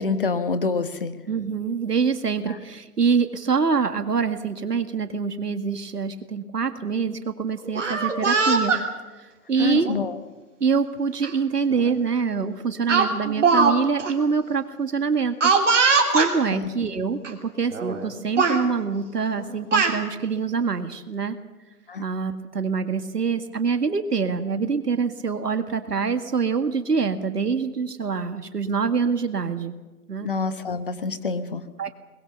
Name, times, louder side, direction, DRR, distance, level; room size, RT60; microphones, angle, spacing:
voice 1, 0.0-1.1 9.6-10.1 16.5-16.7 21.9-22.0 30.2-31.6, left 4 dB, 35° left, 12 dB, 1.2 m, -26 dB
voice 2, 1.3-8.8 9.2-9.9 10.6-21.4 22.0-29.7 30.1-30.3 31.8-31.9, right 5 dB, 90° right, 9 dB, 2.0 m, -25 dB
Speech, 7.6-8.8 9.8-10.0 11.2-11.3 11.7-11.9 12.9-13.7 14.0-14.1 15.4-16.3 17.2-17.3 17.7-18.1 18.4-18.6 19.4-20.0, right 4 dB, 50° right, 3.2 m, -21 dB
23.0 x 21.0 x 6.7 m, 1.2 s
hypercardioid pair, 170°, 46 cm